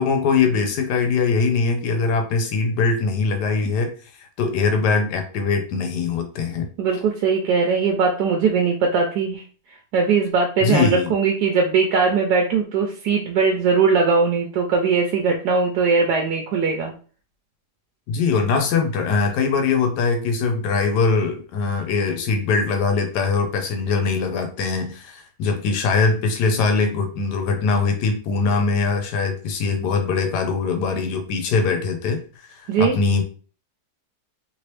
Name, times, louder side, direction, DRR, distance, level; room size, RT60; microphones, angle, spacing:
voice 1, 0.0-3.9 4.2-6.7 10.6-11.1 18.1-33.2, left 4 dB, 90° left, 5 dB, 1.3 m, -22 dB
voice 2, 6.8-9.4 9.9-16.9 32.7-32.9, right 5 dB, 85° right, 2 dB, 1.2 m, -20 dB
3.1 x 3.0 x 3.1 m, 0.40 s
omnidirectional pair, 1.7 m